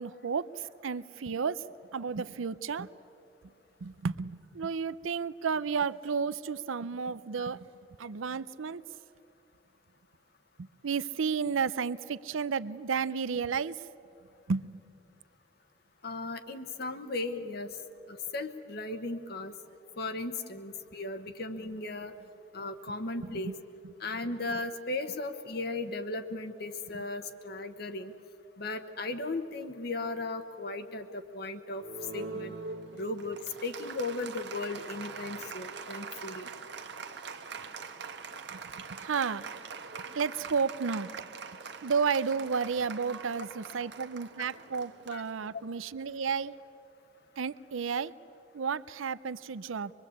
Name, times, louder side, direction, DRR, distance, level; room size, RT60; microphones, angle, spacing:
voice 1, 0.0-1.6 1.9-2.9 3.8-7.7 8.0-8.8 10.6-13.8 14.5-14.8 23.2-23.5 26.9-27.0 38.5-38.6 38.9-39.5 40.1-41.3 41.8-46.6 47.4-48.1 48.5-49.9, right 5 dB, 85° right, 17 dB, 0.6 m, -32 dB
voice 2, 16.0-17.7 18.3-19.5 20.0-22.1 22.5-23.5 24.0-28.1 28.6-31.8 32.1-32.5 32.9-36.5 45.1-45.3, left 2 dB, 50° left, 7 dB, 1.1 m, -36 dB
Applause, 31.8-45.8, right 4 dB, 60° right, 1.2 m, -43 dB
25.0 x 22.0 x 8.5 m, 2.8 s
head